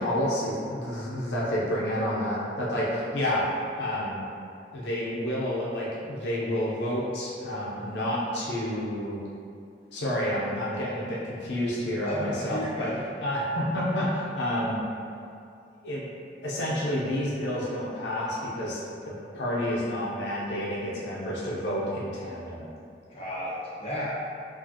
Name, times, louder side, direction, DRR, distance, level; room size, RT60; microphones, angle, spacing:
voice 1, 0.0-3.5 3.8-4.2 4.7-9.2 9.9-12.9 13.2-14.8 15.8-16.1 16.4-22.7, equal, 80° left, -6 dB, 0.7 m, -29 dB
voice 2, 12.0-13.0 23.1-24.1, equal, 35° left, -9 dB, 0.9 m, -33 dB
4.7 x 2.4 x 2.8 m, 2.5 s
head